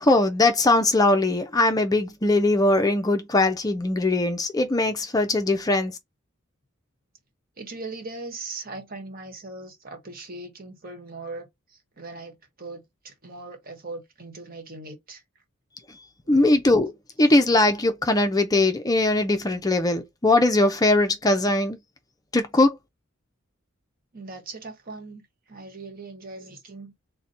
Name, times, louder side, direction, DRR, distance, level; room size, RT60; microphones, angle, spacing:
voice 1, 0.0-6.0 16.3-16.9 17.2-21.8 22.3-22.8, left 2 dB, 20° left, 0.5 m, -20 dB
voice 2, 7.6-15.2 16.2-16.6 24.1-25.2 25.5-26.9, right 3 dB, 45° right, 1.2 m, -39 dB
4.0 x 2.2 x 4.0 m
head